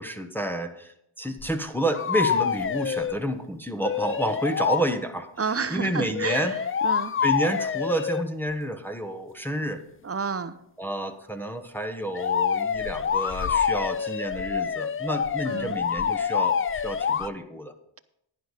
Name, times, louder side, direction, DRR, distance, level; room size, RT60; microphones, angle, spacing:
voice 1, 0.0-6.6 7.2-9.8 10.8-17.7, right 1 dB, 5° left, 5 dB, 1.1 m, -30 dB
sound 1, 1.4-1.5 1.9-3.2 3.8-4.8 6.1-8.3 12.1-17.3, left 7 dB, 30° left, 0.4 m, -26 dB
voice 2, 5.4-6.5 6.8-7.1 10.0-10.5 15.5-15.8, right 5 dB, 30° right, 12 dB, 0.9 m, -30 dB
11.0 x 10.0 x 4.1 m, 0.77 s
cardioid pair, 60°, 49 cm